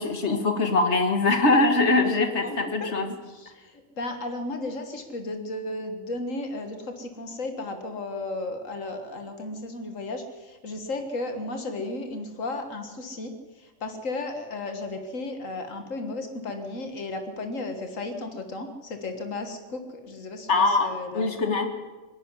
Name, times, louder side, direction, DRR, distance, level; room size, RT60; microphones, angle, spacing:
voice 1, 0.0-3.2 20.5-21.7, left 3 dB, 60° left, 6 dB, 2.3 m, -22 dB
voice 2, 2.4-2.9 3.3-13.3 13.6-21.3, left 2 dB, 90° left, 6 dB, 2.0 m, -34 dB
24.5 x 11.5 x 9.8 m, 1.3 s
omnidirectional pair, 1.3 m